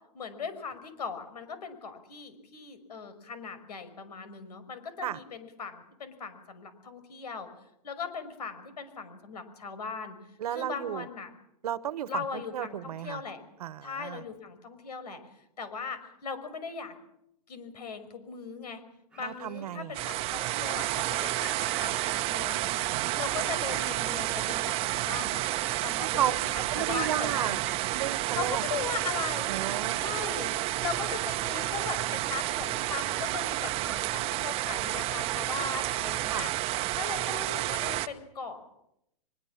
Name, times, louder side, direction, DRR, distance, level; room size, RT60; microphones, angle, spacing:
voice 1, 0.1-7.5 7.8-10.2 10.5-11.3 12.1-13.4 13.8-15.2 15.6-16.9 17.5-18.8 19.2-25.5 25.8-27.6 28.3-29.5 29.9-30.5 30.8-36.5 37.0-38.6, left 5 dB, 85° left, 11 dB, 5.8 m, -39 dB
voice 2, 10.4-11.1 11.6-13.2 13.6-14.2 19.2-19.9 22.9-23.2 26.0-27.6 27.9-28.6 29.5-30.0 36.3-36.5, right 11 dB, 70° right, 15 dB, 1.4 m, -33 dB
sound 1, 19.1-32.0 32.7-34.0, right 4 dB, 5° right, 2.2 m, -49 dB
sound 2, 19.9-38.1, right 16 dB, 30° right, 1.1 m, -30 dB
23.5 x 21.5 x 7.4 m, 0.80 s
hypercardioid pair, 145°, 20 cm